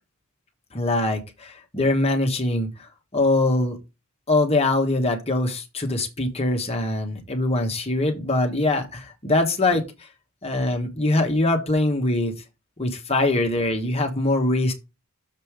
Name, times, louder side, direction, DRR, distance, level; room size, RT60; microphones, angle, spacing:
voice 1, 0.7-3.8 4.3-9.8 10.4-12.3 12.8-14.7, left 2 dB, 25° left, 1.4 m, -23 dB
6.9 x 5.5 x 5.0 m
head